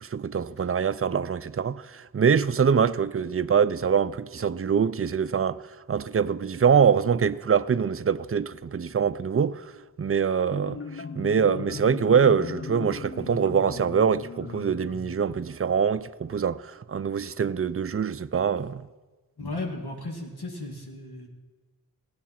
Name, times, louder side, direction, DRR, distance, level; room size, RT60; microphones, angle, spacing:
voice 1, 0.0-5.6 5.9-9.6 10.0-18.8, right 7 dB, 40° right, 0.4 m, -24 dB
Marimba xylophone, 10.3-15.8, left 5 dB, 35° left, 0.5 m, -38 dB
voice 2, 19.4-21.3, left 2 dB, 90° left, 2.0 m, -35 dB
16.0 x 10.5 x 5.8 m
wide cardioid pair, 55°, 38 cm